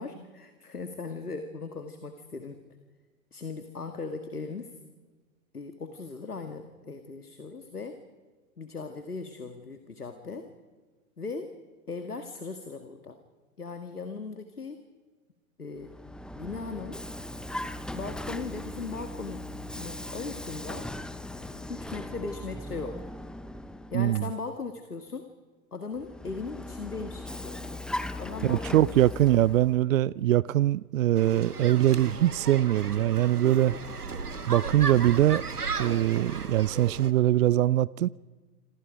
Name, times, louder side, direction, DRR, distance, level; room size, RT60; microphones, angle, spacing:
voice 1, 0.0-2.6 3.3-4.7 5.5-8.0 8.6-10.5 11.2-11.5 11.9-13.2 13.6-14.8 15.6-15.9 16.3-17.0 17.9-19.4 19.8-20.9 21.7-23.0 23.9-25.3 25.7-27.8 28.2-28.8, left 4 dB, 85° left, 2.0 m, -38 dB
Vehicle, 15.8-24.3 26.0-29.8, left 1 dB, ahead, 0.8 m, -39 dB
voice 2, 23.9-24.3 28.4-33.7 34.5-35.4 35.8-38.1, right 13 dB, 60° right, 0.6 m, -23 dB
sound 1, 31.2-37.1, right 4 dB, 85° right, 1.5 m, -35 dB
28.0 x 26.5 x 5.1 m
figure-of-eight pair, 100°, 44 cm